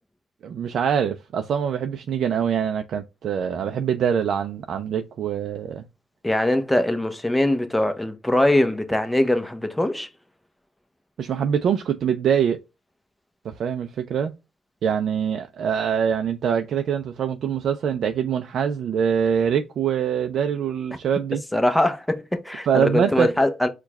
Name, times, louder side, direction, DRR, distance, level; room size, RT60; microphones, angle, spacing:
voice 1, 0.4-5.8 11.2-12.6 13.4-14.3 14.8-21.4 22.7-23.3, right 8 dB, 65° right, 0.4 m, -24 dB
voice 2, 6.2-10.1 21.5-23.7, left 1 dB, 5° left, 0.7 m, -22 dB
4.6 x 2.3 x 4.0 m
cardioid pair, 90°, 0 cm